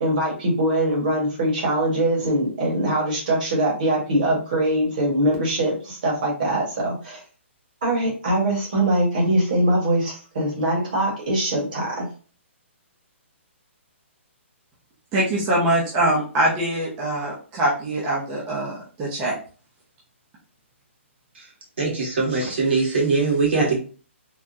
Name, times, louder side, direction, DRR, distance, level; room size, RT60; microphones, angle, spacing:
voice 1, 0.0-7.2 7.8-12.0, right 1 dB, 40° right, -2 dB, 1.3 m, -22 dB
voice 2, 15.1-19.4, right 1 dB, 15° right, -5 dB, 0.5 m, -23 dB
voice 3, 21.8-23.8, right 4 dB, 60° right, -2 dB, 1.5 m, -21 dB
3.5 x 2.1 x 2.6 m, 0.38 s
hypercardioid pair, 170°, 7 cm